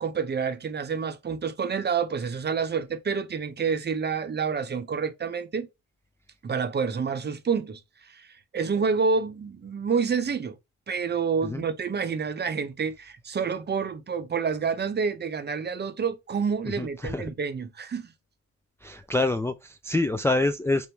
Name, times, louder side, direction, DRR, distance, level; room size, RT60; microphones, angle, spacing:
voice 1, 0.0-5.7 6.4-8.3 8.5-10.6 10.9-18.1, right 5 dB, 35° right, 0.8 m, -28 dB
voice 2, 16.7-17.3 18.8-20.9, left 2 dB, 10° left, 0.4 m, -26 dB
5.3 x 2.1 x 4.5 m
cardioid pair, 90°, 30 cm